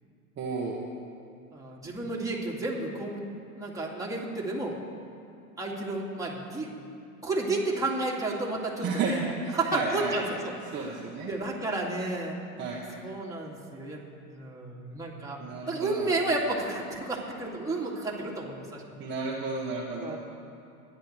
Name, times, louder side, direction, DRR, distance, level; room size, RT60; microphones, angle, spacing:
voice 1, 0.4-0.8 8.8-9.1 9.4-10.2 10.7-11.3 12.6-12.8 15.4-16.1 19.0-20.2, right 4 dB, 25° right, -4 dB, 1.5 m, -32 dB
voice 2, 1.5-3.2 3.6-4.8 5.6-6.7 7.2-9.2 9.5-12.4 13.0-14.0 14.3-15.4 15.7-18.8 20.0-20.2, right 2 dB, 5° right, -4 dB, 2.6 m, -32 dB
24.5 x 10.5 x 3.4 m, 2.7 s
hypercardioid pair, 115°, 45 cm